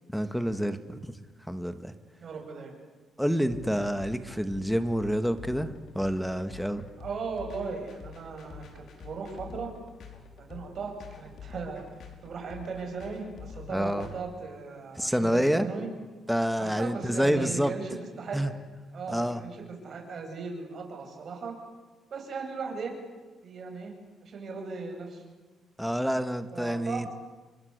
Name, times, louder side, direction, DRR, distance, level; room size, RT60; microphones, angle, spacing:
voice 1, 0.1-1.1 1.5-1.9 3.2-6.8 13.7-14.1 15.0-15.7 16.3-17.7 18.3-18.5 19.1-19.4 25.8-27.1, equal, ahead, 10 dB, 2.1 m, -28 dB
voice 2, 2.2-2.8 7.0-9.7 10.4-11.8 12.2-15.9 16.6-18.4 18.9-21.6 22.1-23.0 23.4-23.9 24.2-25.2 26.5-27.1, right 5 dB, 55° right, 3 dB, 8.0 m, -37 dB
sound 1, 3.5-14.2, left 7 dB, 60° left, 5.5 m, -47 dB
29.0 x 24.0 x 8.4 m, 1.3 s
cardioid pair, 90°, 0 cm